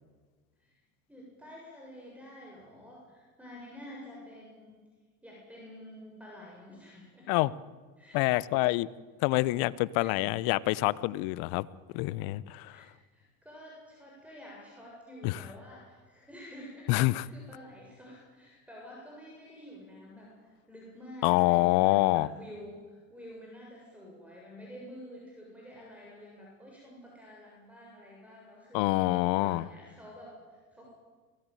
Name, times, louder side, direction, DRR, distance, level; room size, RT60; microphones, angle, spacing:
voice 1, 1.1-4.8 5.2-7.5 8.0-8.6 10.0-10.5 12.7-28.9 29.4-30.9, left 1 dB, 5° right, -2 dB, 7.1 m, -49 dB
voice 2, 8.1-8.9 9.2-11.7 11.9-12.8 15.2-15.4 16.9-17.3 21.2-22.3 28.7-29.7, left 19 dB, 60° left, 21 dB, 0.9 m, -26 dB
23.5 x 17.5 x 9.2 m, 1.4 s
hypercardioid pair, 95°, 41 cm